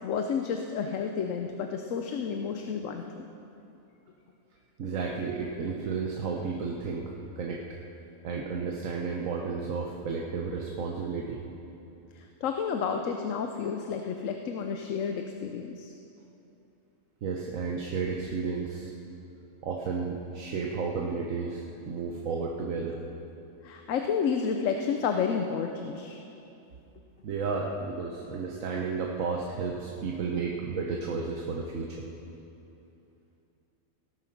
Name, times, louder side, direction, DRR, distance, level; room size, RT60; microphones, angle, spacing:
voice 1, 0.0-3.3 12.1-15.9 23.6-26.2, left 6 dB, 75° left, 5 dB, 1.1 m, -31 dB
voice 2, 4.8-7.6 8.2-11.4 17.2-18.9 19.6-23.0 27.2-32.0, right 5 dB, 75° right, -1 dB, 1.3 m, -32 dB
17.0 x 9.1 x 5.9 m, 2.8 s
omnidirectional pair, 1.4 m